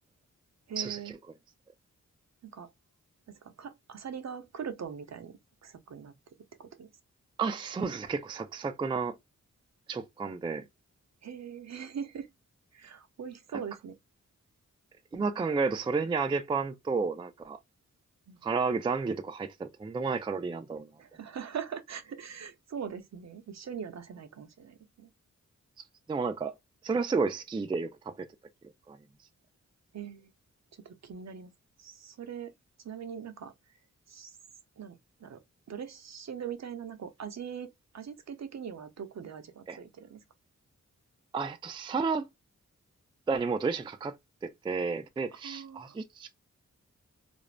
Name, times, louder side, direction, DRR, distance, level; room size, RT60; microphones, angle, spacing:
voice 1, 0.7-1.1 2.4-2.7 3.4-6.1 6.6-6.9 11.2-12.3 12.7-14.0 15.1-15.3 18.3-18.4 21.0-25.1 29.9-30.3 30.8-31.5 31.8-32.5 32.8-33.5 34.1-34.3 34.8-35.4 35.7-40.2 45.4-46.0, right 7 dB, 60° right, 0.6 m, -41 dB
voice 2, 7.4-9.2 9.9-10.6 15.1-17.6 18.4-20.9 26.1-26.5 26.8-28.3 28.9-29.0 39.7-39.8 41.3-42.3 43.3-44.1 44.4-46.4, right 4 dB, 15° right, 0.3 m, -31 dB
2.4 x 2.0 x 3.1 m
cardioid pair, 60°, 31 cm